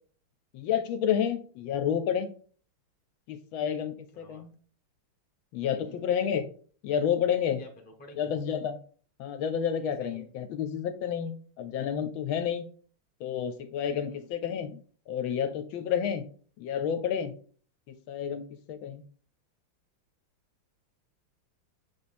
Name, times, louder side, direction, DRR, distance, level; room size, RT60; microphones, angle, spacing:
voice 1, 0.5-2.3 3.3-4.5 5.5-6.5 6.8-7.6 8.2-8.8 9.2-12.7 13.2-14.8 15.1-16.2 16.6-17.3 18.1-18.4 18.7-19.0, left 8 dB, 75° left, 8 dB, 1.3 m, -30 dB
voice 2, 4.1-4.5 5.8-6.1 7.5-8.3 10.0-10.3 14.0-14.3, equal, 10° left, 2 dB, 0.5 m, -51 dB
7.1 x 3.5 x 4.2 m, 0.44 s
omnidirectional pair, 2.4 m